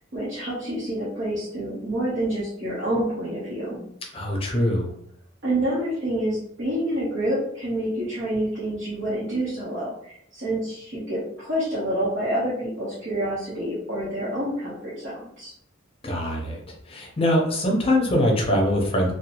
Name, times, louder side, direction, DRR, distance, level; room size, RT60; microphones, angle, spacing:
voice 1, 0.1-3.9 5.4-15.5, right 1 dB, 60° right, -9 dB, 0.9 m, -28 dB
voice 2, 4.1-4.9 16.0-16.6 16.9-19.1, left 1 dB, 30° left, 0 dB, 0.6 m, -22 dB
2.7 x 2.2 x 2.8 m, 0.73 s
head